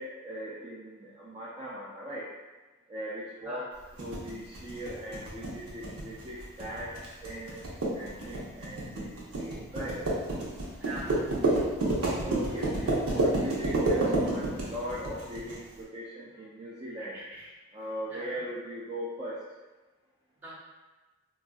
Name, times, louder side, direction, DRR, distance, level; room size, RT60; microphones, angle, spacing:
voice 1, 0.0-2.2 2.9-3.7 4.0-6.9 7.2-7.6 7.9-10.1 12.2-17.2 17.7-19.4, right 1 dB, 25° right, -8 dB, 0.4 m, -39 dB
sound 1, 4.0-15.6, right 2 dB, 85° right, 0.8 m, -29 dB
voice 2, 10.8-11.1 17.0-17.5 18.1-18.4 20.4-20.5, right 1 dB, 10° right, -9 dB, 0.8 m, -43 dB
3.9 x 2.4 x 2.3 m, 1.2 s
head